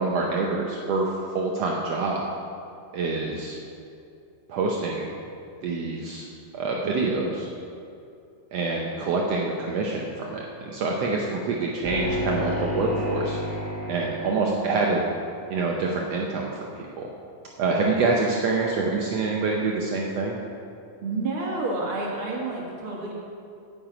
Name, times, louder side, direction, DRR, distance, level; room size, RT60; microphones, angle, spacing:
voice 1, 0.0-2.2 2.9-3.6 4.5-5.1 5.6-6.3 6.5-7.5 8.5-13.4 13.9-15.1 15.5-17.1 17.6-20.4, right 3 dB, 75° right, -1 dB, 1.5 m, -26 dB
sound 1, 11.8-15.3, left 1 dB, 10° left, 0.7 m, -31 dB
voice 2, 21.0-23.1, right 3 dB, 50° right, -2 dB, 2.0 m, -29 dB
9.1 x 9.0 x 5.0 m, 2.6 s
omnidirectional pair, 3.8 m